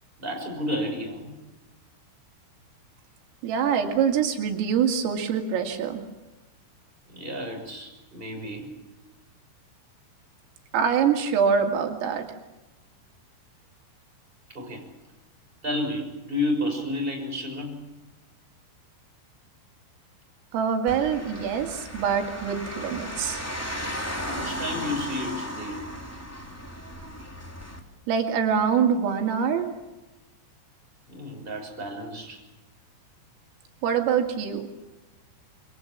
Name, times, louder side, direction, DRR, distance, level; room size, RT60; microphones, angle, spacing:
voice 1, 0.2-1.3 7.1-8.7 14.5-14.9 15.6-17.7 24.2-25.9 31.1-32.4, left 1 dB, 10° right, 2 dB, 6.0 m, -31 dB
voice 2, 3.4-6.0 10.7-12.3 20.5-23.4 28.1-29.7 33.8-34.7, right 7 dB, 85° right, 4 dB, 4.8 m, -24 dB
sound 1, 20.9-27.8, equal, 5° left, 1.3 m, -35 dB
27.5 x 24.0 x 7.4 m, 1.0 s
omnidirectional pair, 5.8 m